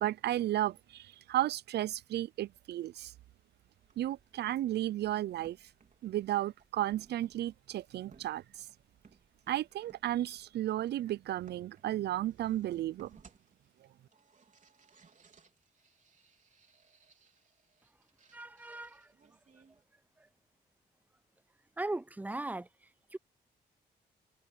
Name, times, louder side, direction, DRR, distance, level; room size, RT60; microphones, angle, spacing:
voice 1, 0.0-3.1 4.0-5.6 6.0-8.4 9.5-13.2, right 13 dB, 75° right, 0.5 m, -33 dB
sound 1, 3.8-19.8, right 5 dB, 45° right, 4.2 m, -63 dB
voice 2, 18.3-19.1 21.8-22.7 23.1-23.2, right 2 dB, 10° right, 0.5 m, -38 dB
cardioid pair, 70°, 18 cm